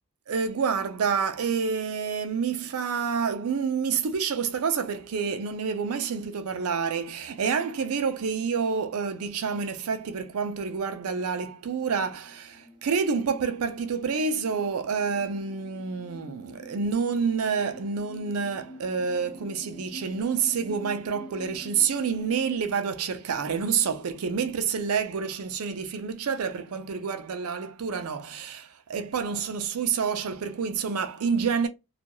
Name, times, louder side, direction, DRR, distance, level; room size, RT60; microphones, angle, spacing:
voice 1, 0.3-31.7, right 6 dB, 85° right, 0.5 m, -28 dB
sound 1, 11.5-22.6, right 1 dB, 65° left, 0.9 m, -47 dB
2.4 x 2.3 x 2.8 m
head